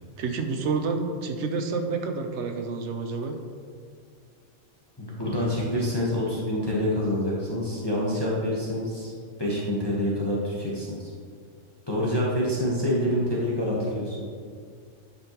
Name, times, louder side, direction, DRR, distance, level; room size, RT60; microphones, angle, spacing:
voice 1, 0.2-3.3, right 4 dB, 65° right, 5 dB, 1.0 m, -29 dB
voice 2, 5.0-9.1 9.4-11.1 11.9-14.2, left 1 dB, 20° left, -6 dB, 1.1 m, -27 dB
10.0 x 5.3 x 3.0 m, 2.1 s
omnidirectional pair, 1.3 m